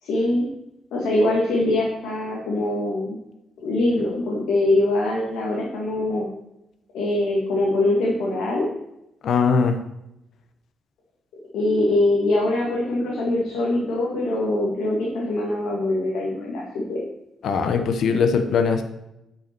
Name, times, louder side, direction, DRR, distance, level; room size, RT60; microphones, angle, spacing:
voice 1, 0.0-0.5 0.9-3.2 3.6-6.3 6.9-8.7 11.5-17.0, left 2 dB, 90° left, -3 dB, 1.8 m, -23 dB
voice 2, 9.2-9.7 17.4-18.8, left 5 dB, 70° left, 7 dB, 1.0 m, -20 dB
9.0 x 5.8 x 4.4 m, 0.88 s
cardioid pair, 95°, 0 cm